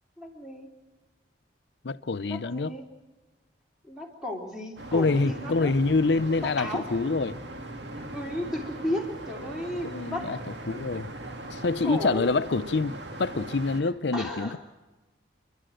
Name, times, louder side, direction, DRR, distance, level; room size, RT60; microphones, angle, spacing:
voice 1, 0.2-0.7 2.2-2.9 3.9-5.7 6.4-6.8 7.9-10.3 11.8-12.3 14.1-14.6, left 1 dB, 5° right, 3.2 m, -34 dB
voice 2, 1.8-2.8 4.9-7.4 9.8-10.4 10.7-11.1 11.5-14.6, left 3 dB, 65° left, 0.6 m, -26 dB
sound 1, 4.8-13.8, right 1 dB, 70° right, 2.0 m, -40 dB
29.5 x 11.5 x 7.7 m
head